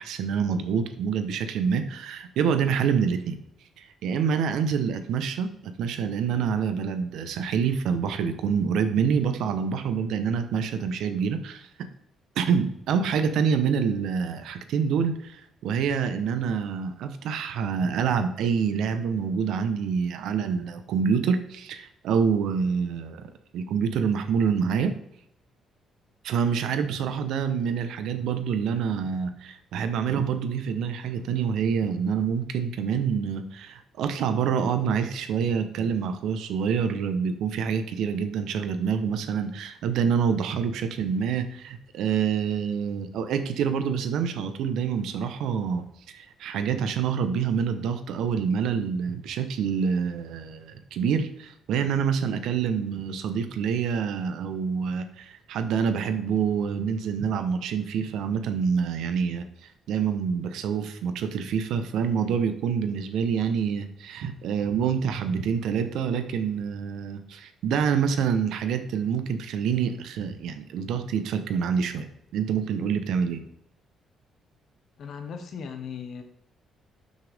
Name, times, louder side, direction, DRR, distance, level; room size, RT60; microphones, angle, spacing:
voice 1, 0.0-3.4 3.8-11.9 12.4-24.9 26.2-45.8 46.1-59.5 59.9-73.4, right 6 dB, 75° right, 9 dB, 1.0 m, -27 dB
voice 2, 75.0-76.2, left 6 dB, 50° left, 6 dB, 1.3 m, -37 dB
12.5 x 6.6 x 3.6 m, 0.76 s
cardioid pair, 170°, 0 cm